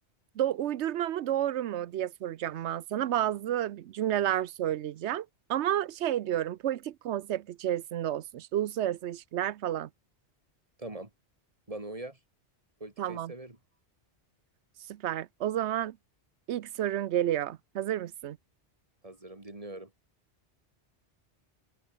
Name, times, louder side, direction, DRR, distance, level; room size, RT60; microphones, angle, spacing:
voice 1, 0.4-9.9 13.0-13.3 14.9-16.0 16.5-18.4, right 11 dB, 75° right, 0.9 m, -31 dB
voice 2, 10.8-11.1 11.7-12.2 12.8-13.6 19.0-19.9, right 2 dB, 30° right, 2.5 m, -42 dB
open air
omnidirectional pair, 1.2 m